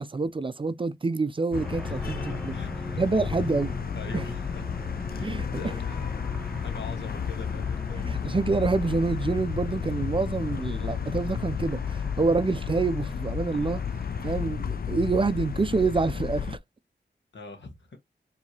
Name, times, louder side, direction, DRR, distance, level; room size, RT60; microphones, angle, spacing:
voice 1, 0.0-2.6 3.0-3.7 4.1-4.2 5.2-5.6 7.9-13.8 14.2-16.6, right 3 dB, 30° right, 0.3 m, -27 dB
sound 1, 1.5-16.6, left 7 dB, 55° left, 0.4 m, -32 dB
sound 2, 1.5-14.4, left 1 dB, ahead, 0.7 m, -42 dB
voice 2, 1.9-3.0 3.3-3.5 3.9-4.6 5.1-6.1 6.4-8.3 17.3-18.0, left 3 dB, 85° left, 1.1 m, -43 dB
4.6 x 2.7 x 2.7 m
wide cardioid pair, 80°, 18 cm